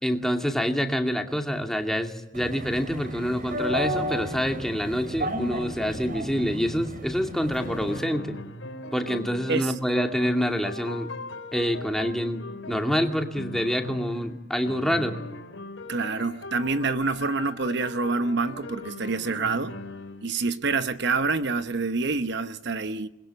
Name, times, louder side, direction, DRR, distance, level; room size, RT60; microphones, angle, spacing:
voice 1, 0.0-8.4 8.9-11.1 11.5-15.2, equal, ahead, 2.6 m, -27 dB
sound 1, 2.3-8.0, equal, 45° right, 3.3 m, -33 dB
sound 2, 7.1-14.4 14.6-20.3, left 2 dB, 90° left, 3.8 m, -40 dB
voice 2, 15.9-19.8 20.2-23.1, right 3 dB, 60° right, 1.0 m, -27 dB
28.0 x 21.0 x 7.8 m
head